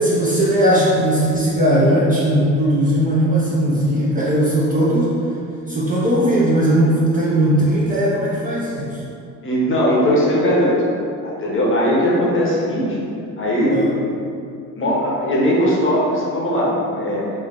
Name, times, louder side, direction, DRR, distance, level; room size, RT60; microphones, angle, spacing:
voice 1, 0.0-5.1 5.7-9.0 13.7-13.9, right 1 dB, 20° right, -7 dB, 0.7 m, -18 dB
voice 2, 9.4-10.8 11.2-13.0 13.4-13.8 14.7-17.2, equal, 25° left, -5 dB, 0.9 m, -19 dB
4.3 x 2.7 x 2.5 m, 2.6 s
figure-of-eight pair, 50°, 44 cm